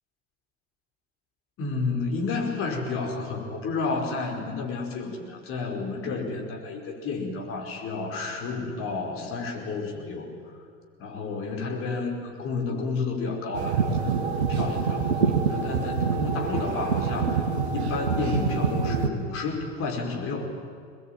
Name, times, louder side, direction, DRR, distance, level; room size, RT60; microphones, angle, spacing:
voice 1, 1.6-10.3 11.0-17.4 17.7-20.5, left 4 dB, 40° left, 1 dB, 5.1 m, -31 dB
sound 1, 13.5-19.1, right 5 dB, 75° right, 2.0 m, -26 dB
23.0 x 20.5 x 9.1 m, 2.1 s
figure-of-eight pair, 80°, 33 cm